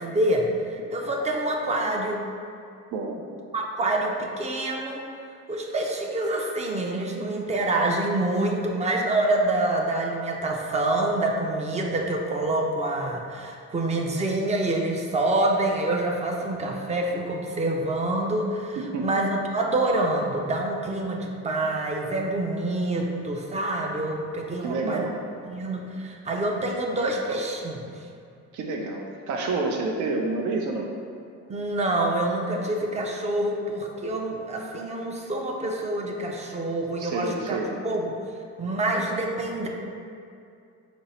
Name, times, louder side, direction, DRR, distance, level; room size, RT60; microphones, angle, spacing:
voice 1, 0.0-2.2 3.5-5.0 5.5-25.1 25.4-27.8 31.5-38.1 38.6-39.7, right 2 dB, 25° right, 1 dB, 0.4 m, -26 dB
voice 2, 2.9-3.2 18.9-19.1 24.6-25.2 28.5-30.9 37.0-37.7, right 3 dB, 80° right, 1 dB, 0.5 m, -28 dB
5.2 x 2.0 x 4.1 m, 2.4 s
cardioid pair, 140°, 30 cm